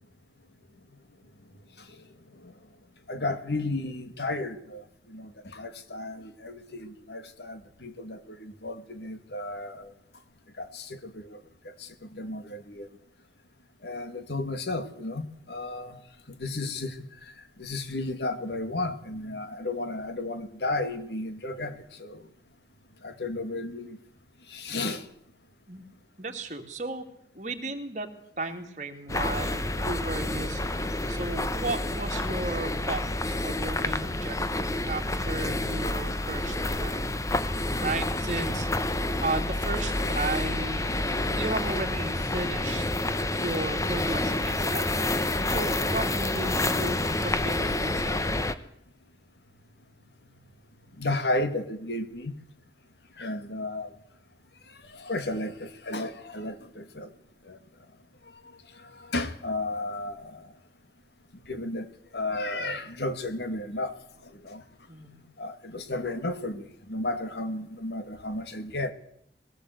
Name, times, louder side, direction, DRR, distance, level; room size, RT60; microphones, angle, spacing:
voice 1, 3.1-9.9 10.6-11.4 11.6-12.9 13.8-16.0 16.3-22.3 23.0-24.0 24.5-25.1 33.5-33.7 51.0-52.4 53.2-53.9 54.7-57.1 57.4-57.6 58.4-60.5 61.5-64.6 65.4-68.9, left 2 dB, 70° left, 2.3 m, -34 dB
voice 2, 26.2-27.0 27.3-37.0 37.5-38.7 39.2-41.0 41.3-42.8 43.3-45.2 45.5-48.3 64.9-65.2, right 2 dB, 40° right, 2.9 m, -35 dB
sound 1, 29.1-48.5, left 2 dB, 20° left, 1.0 m, -28 dB
21.0 x 17.5 x 8.2 m
head